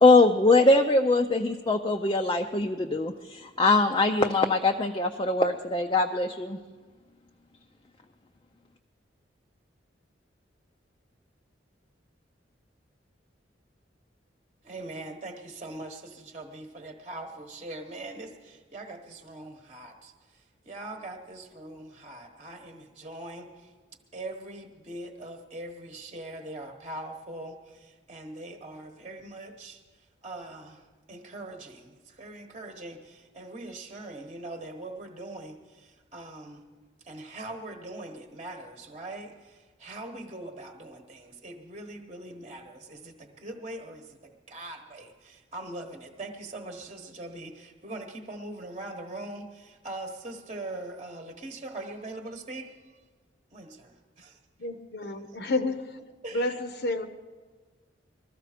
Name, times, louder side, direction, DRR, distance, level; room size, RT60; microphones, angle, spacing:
voice 1, 0.0-6.6, left 2 dB, 25° left, 0.5 m, -22 dB
voice 2, 14.6-23.7 24.1-36.6 37.0-53.0 53.5-54.4 55.3-55.4 56.2-56.6, right 2 dB, 30° right, 1.1 m, -42 dB
voice 3, 54.6-56.0 56.3-57.1, left 2 dB, 60° left, 0.9 m, -30 dB
20.5 x 13.5 x 5.0 m
head